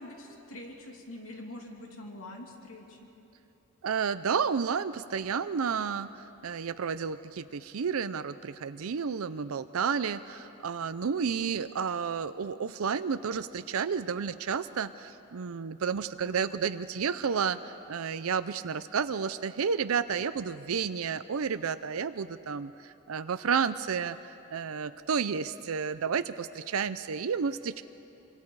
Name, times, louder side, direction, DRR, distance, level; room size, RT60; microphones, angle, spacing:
voice 1, 0.0-3.1, left 1 dB, 70° left, 1 dB, 2.9 m, -44 dB
voice 2, 3.8-6.1 6.4-27.8, right 6 dB, 70° right, 12 dB, 0.5 m, -31 dB
26.0 x 25.5 x 4.8 m, 2.9 s
head